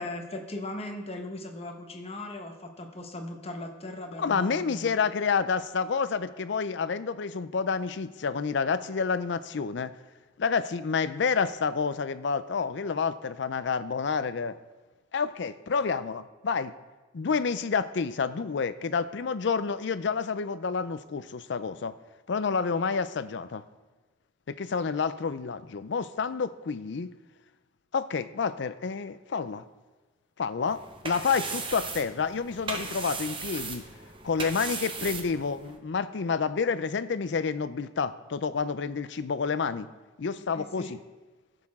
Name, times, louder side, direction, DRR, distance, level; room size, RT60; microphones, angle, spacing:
voice 1, 0.0-4.9 40.4-41.0, left 1 dB, 35° left, 4 dB, 1.1 m, -38 dB
voice 2, 4.2-9.9 10.4-14.6 15.1-16.7 17.1-21.9 22.3-23.6 24.5-27.1 27.9-29.6 30.4-33.9 34.2-39.9 40.2-41.0, left 5 dB, 70° left, 14 dB, 0.5 m, -29 dB
sound 1, 30.7-35.8, right 4 dB, 30° right, 0.9 m, -37 dB
15.5 x 6.7 x 3.6 m, 1.3 s
head